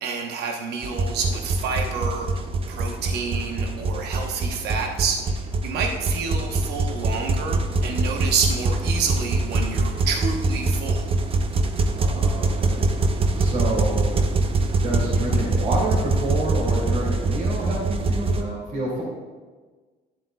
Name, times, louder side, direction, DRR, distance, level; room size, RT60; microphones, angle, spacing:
voice 1, 0.0-11.1, right 5 dB, 75° right, 2 dB, 1.1 m, -29 dB
sound 1, 0.8-18.4, right 2 dB, 35° right, 0.7 m, -24 dB
voice 2, 12.0-12.8 13.4-14.2 14.8-19.0, right 1 dB, 50° right, -5 dB, 2.4 m, -28 dB
11.0 x 7.5 x 2.3 m, 1.4 s
cardioid pair, 110°, 17 cm